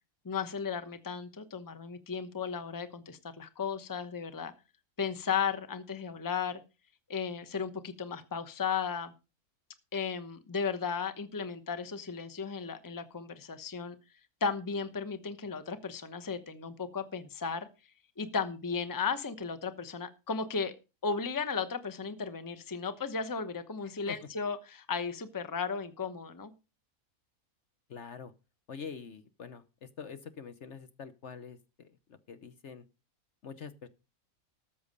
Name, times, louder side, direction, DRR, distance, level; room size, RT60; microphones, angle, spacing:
voice 1, 0.2-4.5 5.0-6.6 7.1-9.1 9.9-13.9 14.4-17.7 18.2-20.7 21.0-26.5, left 5 dB, 15° left, 10 dB, 0.9 m, -35 dB
voice 2, 23.8-24.3 27.9-28.3 28.7-32.8 33.4-33.9, left 6 dB, 55° left, 11 dB, 1.1 m, -45 dB
13.5 x 7.3 x 5.3 m, 0.30 s
omnidirectional pair, 1.5 m